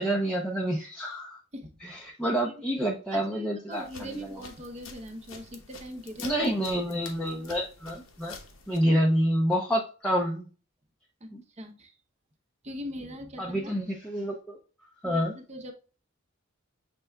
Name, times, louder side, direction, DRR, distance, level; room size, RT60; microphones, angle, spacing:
voice 1, 0.0-1.4 1.8-4.4 6.2-8.4 8.7-10.5 11.3-11.4 13.4-14.6 15.0-15.3, equal, 5° left, -2 dB, 0.5 m, -28 dB
voice 2, 1.5-2.7 3.1-6.4 8.9-9.0 11.2-11.9 12.6-13.8 15.0-15.7, equal, 30° right, 4 dB, 0.7 m, -42 dB
sound 1, 3.7-8.8, left 4 dB, 75° left, 0.9 m, -47 dB
6.6 x 3.3 x 2.2 m, 0.37 s
head